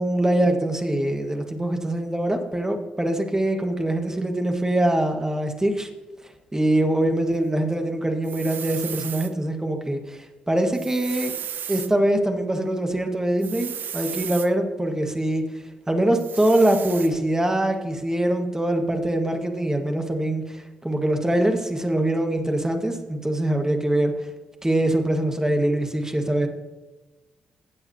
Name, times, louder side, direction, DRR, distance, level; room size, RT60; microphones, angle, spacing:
voice 1, 0.0-5.9 6.5-11.3 11.7-15.4 15.9-24.1 24.6-26.5, right 1 dB, 15° right, 4 dB, 1.8 m, -23 dB
sound 1, 8.2-9.3 10.7-11.9 13.4-14.5 16.1-17.1, right 9 dB, 55° right, 0.4 m, -34 dB
15.5 x 7.8 x 2.9 m, 1.1 s
hypercardioid pair, 40°, 4 cm